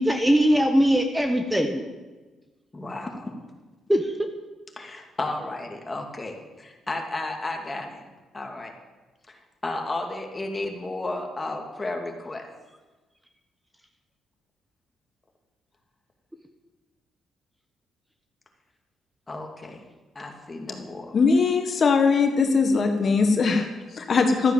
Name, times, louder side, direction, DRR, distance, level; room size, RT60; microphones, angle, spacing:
voice 1, 0.0-1.8 3.9-4.3, equal, 5° right, 6 dB, 1.2 m, -21 dB
voice 2, 2.7-3.3 4.8-8.0 8.3-8.7 9.3-9.4 9.6-12.5 19.3-19.8 20.1-21.1, left 2 dB, 20° left, 3 dB, 2.7 m, -33 dB
voice 3, 21.1-24.5, left 4 dB, 50° left, 5 dB, 1.5 m, -21 dB
13.0 x 10.0 x 7.8 m, 1.2 s
cardioid pair, 90°, 0 cm